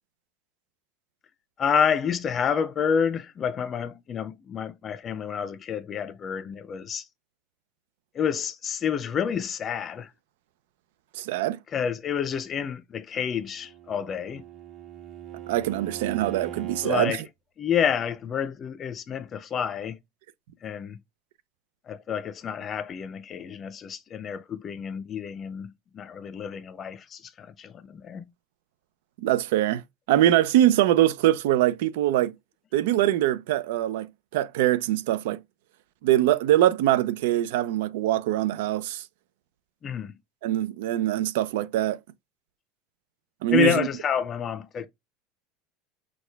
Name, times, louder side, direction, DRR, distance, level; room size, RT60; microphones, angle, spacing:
voice 1, 1.6-7.1 8.1-10.1 11.7-14.4 16.8-17.2 17.6-20.0 20.6-21.0 21.9-28.3 39.8-40.1 43.5-44.9, left 7 dB, 25° left, 0.5 m, -29 dB
voice 2, 11.1-11.6 15.5-17.2 29.2-29.8 30.1-32.3 32.7-34.1 34.3-35.4 36.0-39.0 40.4-42.0 43.4-43.9, right 13 dB, 85° right, 0.5 m, -23 dB
Bowed string instrument, 13.4-17.1, right 10 dB, 35° right, 0.7 m, -41 dB
6.3 x 2.3 x 3.4 m
cardioid pair, 175°, 0 cm